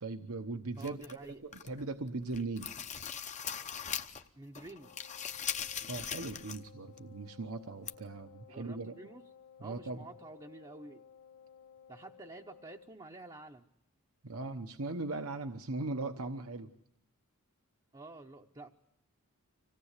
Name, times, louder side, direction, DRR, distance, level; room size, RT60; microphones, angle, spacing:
voice 1, 0.0-2.7 5.9-8.9 9.6-10.1 14.2-16.7, right 3 dB, 70° right, 6 dB, 1.0 m, -39 dB
sound 1, 0.8-1.8 2.2-4.3 4.5-6.7 7.0-7.1 7.9-8.0, left 8 dB, 30° left, 0.8 m, -40 dB
voice 2, 0.8-1.4 4.4-5.0 8.5-9.2 9.6-11.0 11.9-13.6 17.9-18.7, right 2 dB, 20° right, 1 dB, 0.8 m, -49 dB
Wind instrument woodwind instrument, 4.8-13.0, left 7 dB, 85° left, 2.0 m, -58 dB
25.5 x 17.5 x 8.3 m, 0.81 s
head